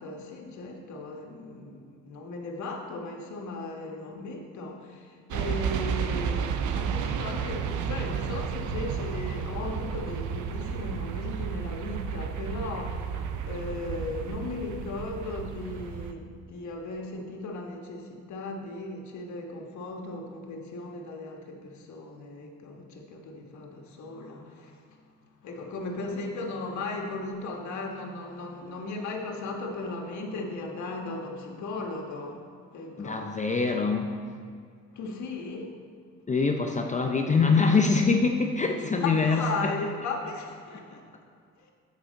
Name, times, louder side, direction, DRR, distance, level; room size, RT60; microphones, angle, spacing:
voice 1, 0.0-32.5 32.7-33.3 34.9-35.8 39.0-41.1 41.6-41.7, left 3 dB, 70° left, 1 dB, 1.4 m, -37 dB
sound 1, 5.3-16.1, right 7 dB, 80° right, 0.6 m, -32 dB
voice 2, 33.0-34.1 36.3-39.7, left 4 dB, 25° left, 3 dB, 0.6 m, -24 dB
8.3 x 4.9 x 5.2 m, 2.2 s
cardioid pair, 90°, 30 cm